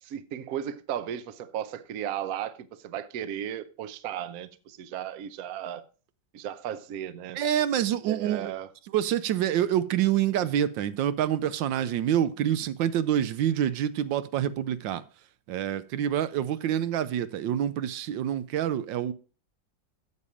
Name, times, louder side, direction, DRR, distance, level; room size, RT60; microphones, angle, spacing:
voice 1, 0.0-5.8 6.3-7.4 8.1-8.7, right 10 dB, 60° right, 1.0 m, -35 dB
voice 2, 7.3-8.5 8.9-15.0 15.5-19.1, right 10 dB, 80° right, 1.3 m, -27 dB
8.3 x 7.2 x 4.9 m
omnidirectional pair, 2.0 m